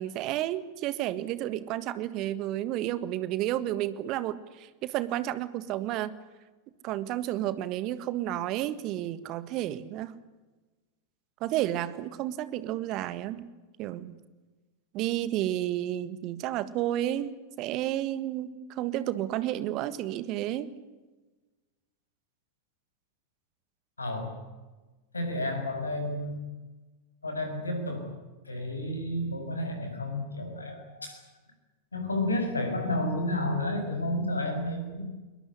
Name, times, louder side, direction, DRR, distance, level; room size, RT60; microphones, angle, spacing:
voice 1, 0.0-6.2 6.8-10.1 11.4-13.5 13.8-14.2 14.9-20.7, right 13 dB, 40° right, 15 dB, 1.6 m, -31 dB
voice 2, 24.0-24.4 25.1-26.4 27.2-28.1 28.4-31.2 31.9-35.0, left 1 dB, 80° left, 6 dB, 6.3 m, -31 dB
22.0 x 21.5 x 10.0 m, 1.2 s
figure-of-eight pair, 90°, 0 cm